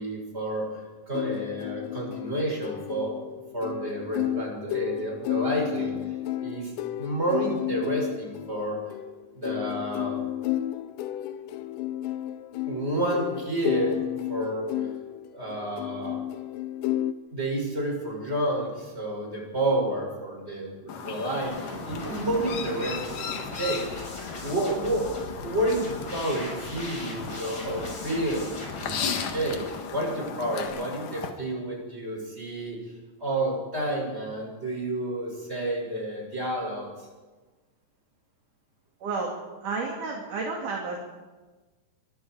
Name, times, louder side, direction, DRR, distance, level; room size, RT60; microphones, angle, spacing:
voice 1, 0.0-3.2 3.5-6.1 6.4-6.7 7.0-8.8 9.3-10.2 12.7-14.0 14.3-14.9 15.3-16.2 17.3-24.1 24.4-28.5 28.8-32.8 33.2-37.1, right 1 dB, 15° right, -1 dB, 7.0 m, -30 dB
sound 1, 1.1-17.1, left 13 dB, 90° left, 3.0 m, -32 dB
Chirp tweet, 20.9-31.3, left 7 dB, 60° left, 2.8 m, -36 dB
sound 2, 21.4-30.7, left 1 dB, 35° left, 8.0 m, -40 dB
voice 2, 39.0-39.3 39.6-41.0, right 4 dB, 55° right, 0 dB, 3.7 m, -31 dB
25.0 x 23.5 x 4.8 m, 1.3 s
omnidirectional pair, 4.8 m